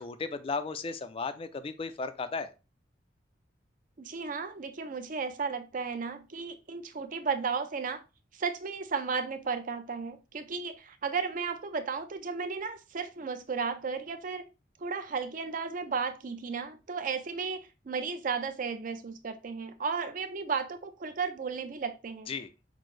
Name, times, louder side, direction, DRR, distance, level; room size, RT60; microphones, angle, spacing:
voice 1, 0.0-2.5 22.3-22.5, left 4 dB, 30° left, 0.3 m, -35 dB
voice 2, 4.0-8.0 8.3-14.4 14.8-22.3, right 5 dB, 45° right, 0.5 m, -34 dB
5.9 x 2.0 x 3.1 m
head